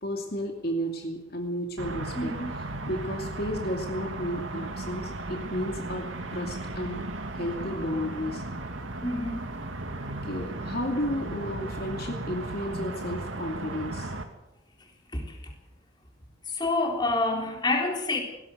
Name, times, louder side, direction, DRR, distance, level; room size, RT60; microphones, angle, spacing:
voice 1, 0.0-2.4 2.9-7.0 7.3-8.4 10.2-14.1, equal, 50° left, 2.6 m, -33 dB
sound 1, 1.8-14.2, right 2 dB, 75° right, 2.5 m, -36 dB
voice 2, 2.1-2.5 9.0-9.6 15.1-15.5 16.5-18.2, left 2 dB, 20° left, 3.8 m, -28 dB
20.0 x 17.0 x 8.1 m
head